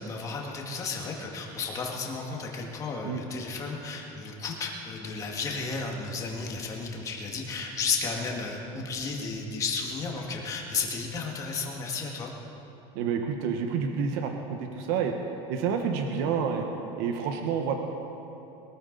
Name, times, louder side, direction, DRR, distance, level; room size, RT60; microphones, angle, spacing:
voice 1, 0.0-12.3, left 4 dB, 25° left, 0 dB, 1.8 m, -33 dB
voice 2, 12.9-15.1 15.5-16.7 17.0-17.7, right 6 dB, 65° right, 4 dB, 1.1 m, -28 dB
22.0 x 13.5 x 4.0 m, 2.9 s
cardioid pair, 170°, 14 cm